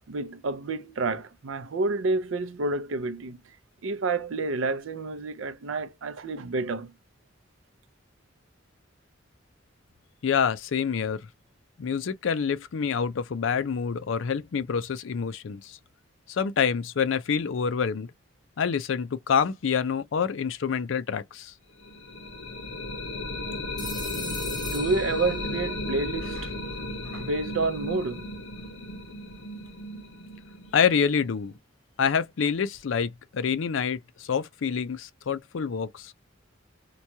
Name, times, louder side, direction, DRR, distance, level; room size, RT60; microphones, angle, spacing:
voice 1, 0.1-3.4 3.8-6.9 24.7-26.5 27.1-28.3, right 3 dB, 75° right, 0.5 m, -29 dB
voice 2, 10.2-11.3 11.8-15.8 16.3-18.1 18.6-21.5 30.7-31.5 32.0-36.1, left 6 dB, 70° left, 0.4 m, -27 dB
sound 1, 21.8-31.6, left 2 dB, 85° left, 0.8 m, -35 dB
Telephone, 23.8-25.8, equal, ahead, 0.9 m, -39 dB
2.9 x 2.3 x 2.6 m
head